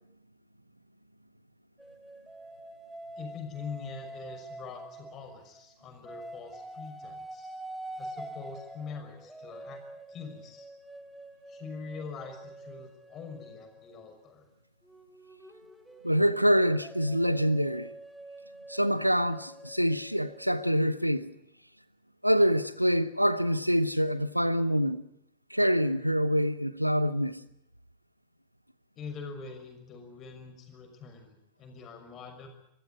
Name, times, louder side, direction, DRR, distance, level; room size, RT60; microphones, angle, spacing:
sound 1, 1.8-5.6 6.1-14.2 14.9-20.8, right 1 dB, 5° right, 2.0 m, -46 dB
voice 1, 3.2-7.5 8.0-9.8 10.1-10.7 11.5-14.5 29.0-32.5, left 5 dB, 30° left, 6.0 m, -44 dB
voice 2, 16.0-17.9 18.7-21.3 22.2-25.0 25.5-27.4, equal, 90° right, 0.9 m, -25 dB
25.5 x 15.5 x 9.7 m
figure-of-eight pair, 90°, 0 cm